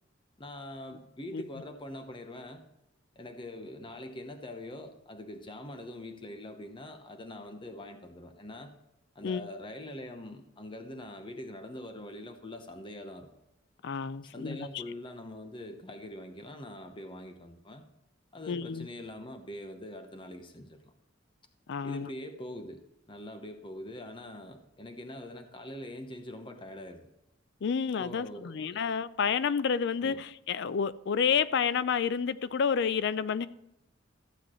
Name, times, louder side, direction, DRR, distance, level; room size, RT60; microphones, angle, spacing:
voice 1, 0.4-2.6 3.2-8.7 9.1-13.3 14.3-17.8 18.3-20.9 21.8-27.1 28.0-28.9 30.0-30.2, left 1 dB, 25° left, 0.8 m, -43 dB
voice 2, 13.8-14.8 18.5-18.9 21.7-22.1 27.6-33.5, left 6 dB, 60° left, 0.4 m, -30 dB
14.0 x 8.0 x 3.1 m
head